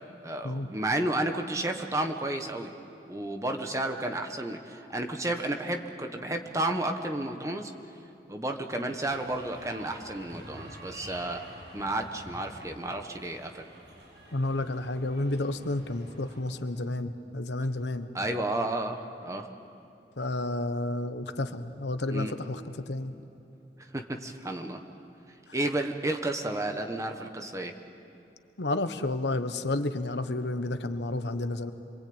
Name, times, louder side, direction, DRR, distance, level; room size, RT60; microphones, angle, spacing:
voice 1, 0.2-2.7 3.1-7.7 8.3-13.7 18.1-19.5 22.1-22.3 23.9-24.8 25.5-27.7, right 1 dB, 15° right, 4 dB, 1.3 m, -32 dB
sound 1, 9.1-16.4, right 1 dB, 85° right, 7.2 m, -48 dB
voice 2, 14.3-18.1 20.2-23.2 28.6-31.7, left 2 dB, 80° left, 10 dB, 1.2 m, -31 dB
27.0 x 23.0 x 8.9 m, 2.8 s
head